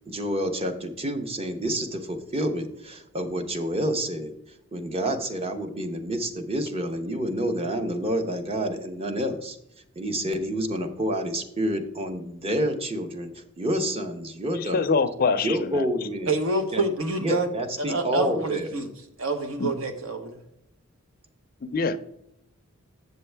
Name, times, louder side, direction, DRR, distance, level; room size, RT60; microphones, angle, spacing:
voice 1, 0.1-9.6 10.0-13.3 13.6-14.9 15.4-16.3 16.7-16.8 17.2-18.7, equal, 25° right, 0.8 m, -28 dB
voice 2, 14.7-15.9 19.6-19.7 21.6-22.0, left 4 dB, 45° left, 0.4 m, -24 dB
voice 3, 16.3-17.5 17.8-18.9 19.2-20.4, right 3 dB, 65° right, 1.1 m, -27 dB
8.0 x 6.7 x 3.3 m
head